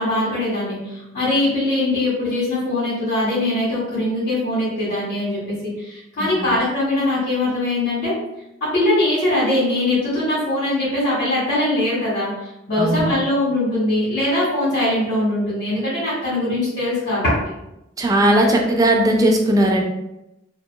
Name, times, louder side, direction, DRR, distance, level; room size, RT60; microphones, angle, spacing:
voice 1, 0.0-8.1 8.7-12.3 12.7-17.3, left 1 dB, 55° left, -9 dB, 1.4 m, -21 dB
voice 2, 12.8-13.1 18.0-19.8, right 1 dB, 20° right, 2 dB, 0.4 m, -17 dB
2.8 x 2.8 x 2.3 m, 0.88 s
head